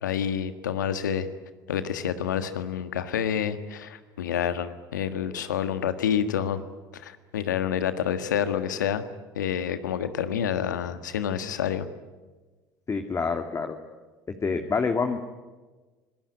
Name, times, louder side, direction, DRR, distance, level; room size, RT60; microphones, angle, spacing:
voice 1, 0.0-1.3 1.7-6.6 6.9-9.0 9.3-11.9, left 8 dB, 85° left, 11 dB, 1.6 m, -28 dB
voice 2, 12.9-13.8 14.4-15.2, left 4 dB, 30° left, 5 dB, 2.5 m, -27 dB
26.0 x 20.0 x 9.8 m, 1.3 s
hypercardioid pair, 65°, 10 cm